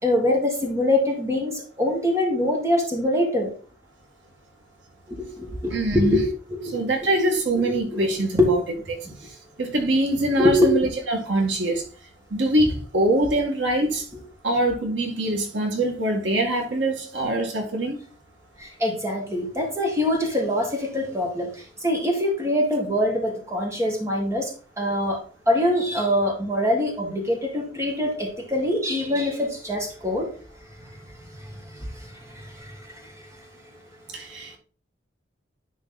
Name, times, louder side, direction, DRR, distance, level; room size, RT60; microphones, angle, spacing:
voice 1, 0.0-3.5 5.1-6.8 7.5-8.5 9.1-9.2 10.4-10.7 18.6-21.5 21.8-24.5 24.8-25.2 25.5-30.3 31.7-31.9 32.3-32.8, left 1 dB, 15° right, 2.1 m, -24 dB
voice 2, 5.7-6.2 6.7-8.6 8.9-9.1 9.6-11.8 12.3-14.0 14.4-18.0 34.1-34.5, right 1 dB, 75° right, 2.0 m, -23 dB
10.5 x 4.0 x 4.1 m
head